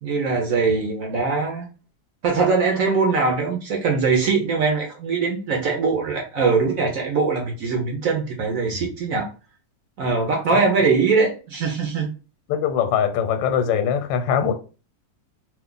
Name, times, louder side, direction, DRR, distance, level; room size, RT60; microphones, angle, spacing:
voice 1, 0.0-1.7 2.2-9.3 10.0-12.1, right 4 dB, 65° right, 0.9 m, -21 dB
voice 2, 12.5-14.5, left 8 dB, 85° left, 1.3 m, -21 dB
2.8 x 2.4 x 3.7 m
omnidirectional pair, 2.0 m